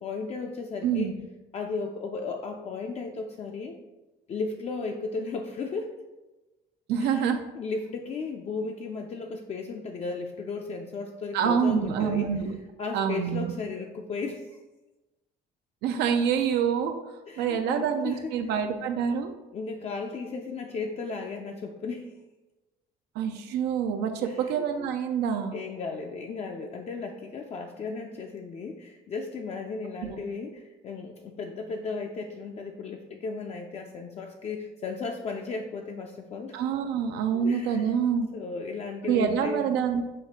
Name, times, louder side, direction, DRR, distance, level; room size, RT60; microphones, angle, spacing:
voice 1, 0.0-1.1 1.5-3.7 4.3-5.9 7.0-12.3 12.8-14.6 17.3-18.3 19.5-22.1 24.2-24.9 25.5-36.6 37.3-37.9 38.3-39.6, left 4 dB, 40° left, 2 dB, 0.4 m, -35 dB
voice 2, 0.8-1.2 6.9-7.4 11.3-12.5 12.9-13.5 15.8-17.0 17.4-19.3 23.2-25.6 30.0-30.2 36.5-38.3 39.1-40.0, right 7 dB, 80° right, 6 dB, 0.4 m, -26 dB
5.1 x 2.4 x 4.1 m, 1.1 s
cardioid pair, 110°, 17 cm